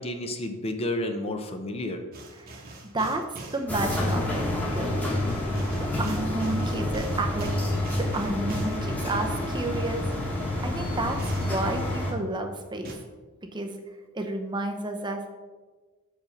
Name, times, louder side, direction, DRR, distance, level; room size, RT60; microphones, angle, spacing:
voice 1, 0.0-2.0, left 1 dB, 25° left, 6 dB, 0.6 m, -31 dB
sound 1, 2.1-3.7 5.3-8.9 11.2-11.6 12.8-12.9, right 2 dB, 40° right, 1.1 m, -43 dB
voice 2, 3.5-5.2 6.0-7.5 7.9-10.1 10.6-12.9 13.5-13.8 14.1-15.2, right 2 dB, 20° right, 4 dB, 0.6 m, -31 dB
sound 2, 3.7-12.1, left 1 dB, 5° left, 1.2 m, -28 dB
5.4 x 5.0 x 6.5 m, 1.3 s
head